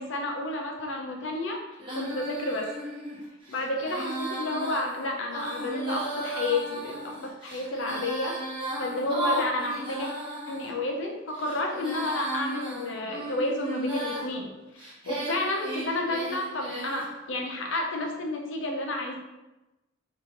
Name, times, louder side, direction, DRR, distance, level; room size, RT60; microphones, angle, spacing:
voice 1, 0.0-1.6 1.9-2.7 3.5-8.4 8.8-10.1 10.5-14.5 14.7-19.2, left 2 dB, 70° left, 2 dB, 0.6 m, -31 dB
Female singing, 1.8-10.7 11.3-14.3 14.8-17.1, right 1 dB, 25° right, 0.9 m, -35 dB
3.0 x 2.7 x 3.8 m, 1.0 s
head